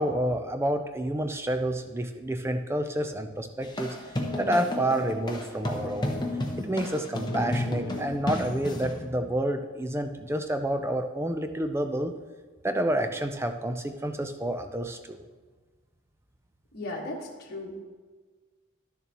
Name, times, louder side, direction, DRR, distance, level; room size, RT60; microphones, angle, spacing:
voice 1, 0.0-4.0 4.4-6.2 6.6-12.1 12.6-15.2, right 1 dB, 10° right, 7 dB, 0.4 m, -29 dB
sound 1, 3.6-9.0, left 1 dB, 20° left, 0.8 m, -32 dB
voice 2, 16.7-17.8, left 1 dB, 45° left, -3 dB, 1.6 m, -36 dB
12.0 x 6.9 x 3.0 m, 1.4 s
head